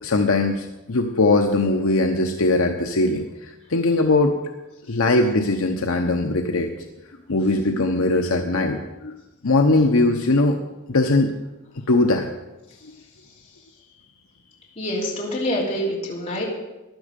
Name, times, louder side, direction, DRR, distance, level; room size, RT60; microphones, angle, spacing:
voice 1, 0.0-4.3 4.9-6.8 7.3-9.2 9.4-10.6 10.9-11.3 11.9-12.3, left 2 dB, 65° left, 3 dB, 0.9 m, -20 dB
voice 2, 14.8-16.5, equal, 30° left, -5 dB, 3.1 m, -26 dB
15.0 x 11.0 x 5.3 m, 1.0 s
head